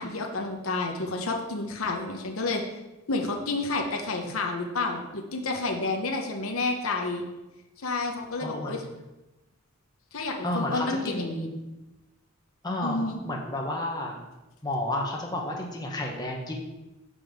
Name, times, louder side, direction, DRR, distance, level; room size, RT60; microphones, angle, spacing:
voice 1, 0.0-2.6 3.1-7.2 7.8-8.8 10.1-11.5 12.8-13.2, left 3 dB, 75° left, 2 dB, 1.0 m, -30 dB
voice 2, 8.4-8.8 10.4-11.6 12.6-13.0 13.2-14.2 14.6-16.6, left 1 dB, 20° left, -1 dB, 1.1 m, -31 dB
5.6 x 5.2 x 6.5 m, 1.0 s
head